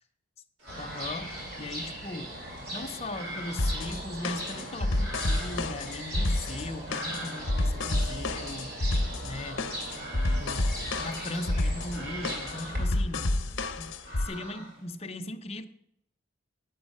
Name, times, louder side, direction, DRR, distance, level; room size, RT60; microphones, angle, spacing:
sound 1, 0.6-14.9, equal, 65° right, 3.2 m, -46 dB
sound 2, 0.7-12.9, right 1 dB, 45° right, 2.7 m, -39 dB
voice 1, 0.8-2.3 2.7-9.8 10.4-13.3 13.8-15.7, left 2 dB, 30° left, 0.6 m, -39 dB
sound 3, 3.6-14.3, left 2 dB, 65° left, 0.8 m, -30 dB
9.4 x 7.1 x 5.3 m
head